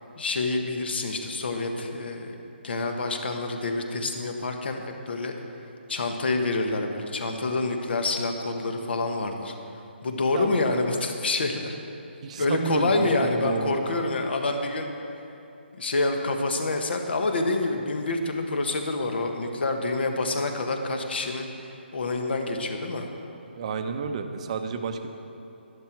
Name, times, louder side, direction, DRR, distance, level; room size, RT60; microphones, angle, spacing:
voice 1, 0.2-2.3 2.6-5.3 5.9-9.5 10.0-11.8 12.4-14.9 15.8-23.1, left 2 dB, 60° left, 4 dB, 1.4 m, -27 dB
voice 2, 10.3-10.8 12.2-14.0 23.6-25.1, right 5 dB, 35° right, 7 dB, 0.7 m, -31 dB
11.5 x 11.5 x 4.6 m, 2.8 s
hypercardioid pair, 160°, 6 cm